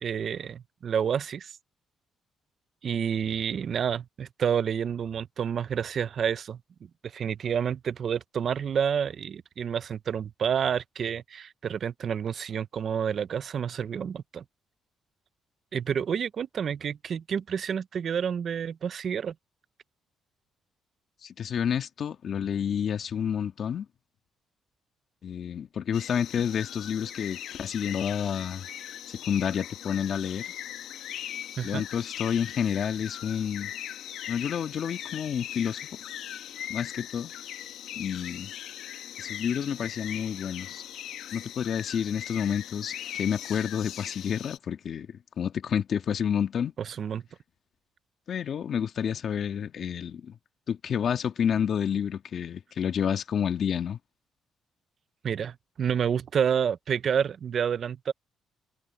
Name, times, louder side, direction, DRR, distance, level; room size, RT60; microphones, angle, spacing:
voice 1, 0.0-1.6 2.8-6.6 7.0-14.4 15.7-19.3 31.6-31.8 46.8-47.2 55.2-58.1, right 7 dB, 55° right, 0.7 m, -29 dB
voice 2, 21.2-23.9 25.2-28.7 29.1-30.5 31.6-33.7 34.3-35.8 36.7-37.3 37.9-38.5 39.2-40.8 41.3-46.7 48.3-50.4 50.7-54.0, left 8 dB, 60° left, 2.0 m, -29 dB
sound 1, 25.9-44.6, left 11 dB, 80° left, 1.2 m, -40 dB
cardioid pair, 90°, 0 cm